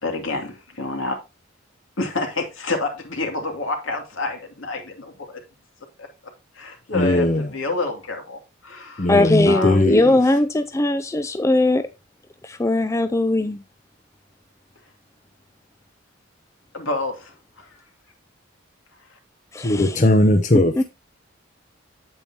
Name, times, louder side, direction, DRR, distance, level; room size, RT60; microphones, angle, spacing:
voice 1, 0.0-1.2 2.0-5.4 6.0-6.1 6.5-9.2 9.5-9.8 16.7-17.8 19.0-19.2, left 2 dB, 75° left, 2.5 m, -28 dB
voice 2, 6.9-7.5 9.0-10.2 19.6-20.8, left 1 dB, 35° left, 0.7 m, -19 dB
voice 3, 9.1-11.8 12.4-13.6 19.5-20.0 20.8-20.9, left 2 dB, 15° left, 0.4 m, -19 dB
8.8 x 8.6 x 2.8 m
head